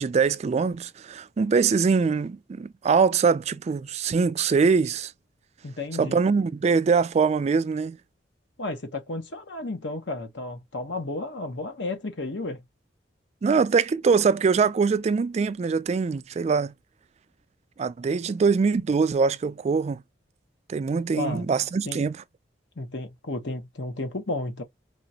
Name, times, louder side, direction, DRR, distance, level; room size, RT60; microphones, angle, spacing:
voice 1, 0.0-5.1 6.0-8.0 13.4-16.7 17.8-20.0 20.7-22.2, right 5 dB, 35° right, 0.3 m, -23 dB
voice 2, 5.6-6.2 8.6-12.6 21.1-21.5 21.9-22.0 22.8-24.6, left 2 dB, 75° left, 1.2 m, -32 dB
4.9 x 2.5 x 2.8 m
head